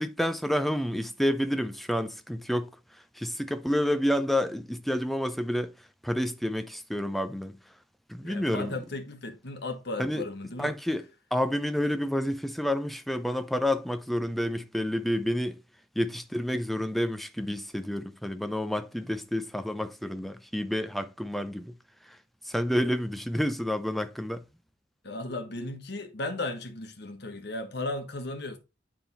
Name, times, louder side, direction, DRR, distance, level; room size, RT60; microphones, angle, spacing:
voice 1, 0.0-2.7 3.2-5.7 6.0-7.6 8.1-8.7 10.0-10.2 10.6-11.0 11.3-15.6 16.0-21.7 22.5-24.4, equal, ahead, 0.6 m, -29 dB
voice 2, 8.2-10.7 25.0-28.6, left 2 dB, 60° left, 1.4 m, -35 dB
9.2 x 3.7 x 4.1 m
head